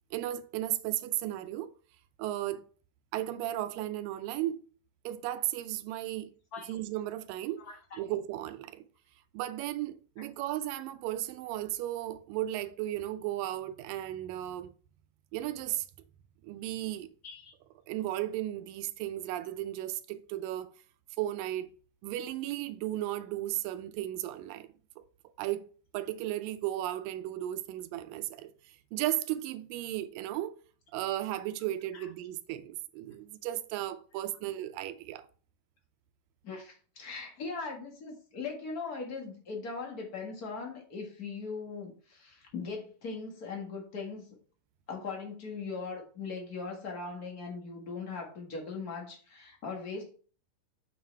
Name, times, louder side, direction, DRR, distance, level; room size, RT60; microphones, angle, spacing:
voice 1, 0.1-1.7 2.2-2.6 3.1-4.6 5.1-6.3 6.7-7.6 8.0-8.8 9.3-14.7 15.3-15.9 16.4-17.1 17.9-20.7 21.2-21.7 22.0-24.7 25.0-25.1 25.4-25.7 25.9-30.6 30.9-35.3, right 13 dB, 80° right, 2.2 m, -35 dB
voice 2, 7.6-8.0 17.2-17.5 31.9-32.0 36.4-44.2 44.9-50.1, left 4 dB, 40° left, 1.5 m, -40 dB
6.5 x 5.8 x 3.4 m
omnidirectional pair, 4.0 m